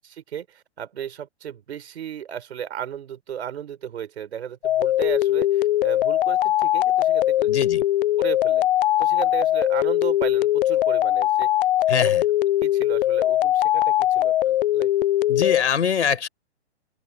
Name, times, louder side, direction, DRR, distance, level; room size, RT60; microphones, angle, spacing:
voice 1, 0.1-7.5 8.2-8.7 9.0-11.5 11.9-12.2 12.6-14.9, right 9 dB, 70° right, 4.4 m, -34 dB
sound 1, 4.6-15.6, left 13 dB, 50° left, 0.5 m, -21 dB
voice 2, 7.5-7.8 11.9-12.2 15.3-16.3, left 7 dB, 85° left, 5.8 m, -23 dB
open air
hypercardioid pair, 150°, 34 cm